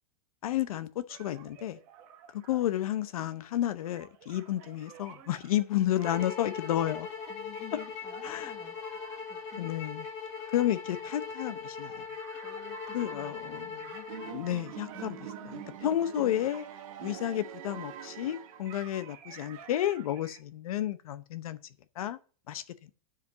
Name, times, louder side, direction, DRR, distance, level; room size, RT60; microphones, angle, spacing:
voice 1, 0.4-1.8 2.3-7.1 8.2-8.5 9.6-10.0 10.5-11.9 12.9-13.7 14.3-15.2 15.8-16.7 17.0-21.6 22.0-22.2 22.5-22.9, left 12 dB, 70° left, 0.8 m, -31 dB
sound 1, 1.1-20.4, right 9 dB, 30° right, 1.2 m, -52 dB
sound 2, 6.0-14.4, left 5 dB, 25° left, 1.5 m, -40 dB
voice 2, 7.3-9.8 12.4-14.1 14.9-15.8, left 6 dB, 10° left, 1.0 m, -51 dB
sound 3, 14.1-19.0, right 10 dB, 60° right, 1.2 m, -44 dB
9.5 x 5.0 x 7.2 m
supercardioid pair, 180°, 19 cm